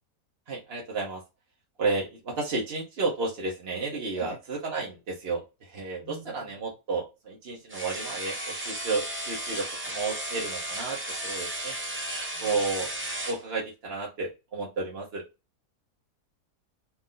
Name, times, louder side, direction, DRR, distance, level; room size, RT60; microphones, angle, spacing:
voice 1, 0.5-1.2 1.8-11.7 12.4-12.9 13.2-15.2, right 3 dB, 45° right, -2 dB, 1.0 m, -32 dB
voice 2, 6.0-6.6 12.3-12.6, right 1 dB, 55° left, -1 dB, 2.1 m, -45 dB
sound 1, 7.7-13.4, right 1 dB, 10° right, 0.6 m, -34 dB
4.3 x 2.6 x 3.8 m, 0.27 s
omnidirectional pair, 1.7 m